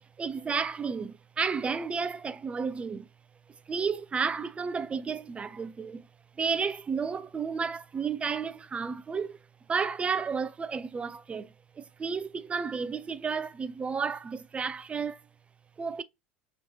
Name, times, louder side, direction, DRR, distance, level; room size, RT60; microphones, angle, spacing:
voice 1, 0.2-3.0 3.7-6.0 6.4-9.3 9.7-11.5 12.0-15.1 15.8-16.0, right 5 dB, 20° right, 0.3 m, -32 dB
3.1 x 3.0 x 2.6 m
figure-of-eight pair, 75°, 6 cm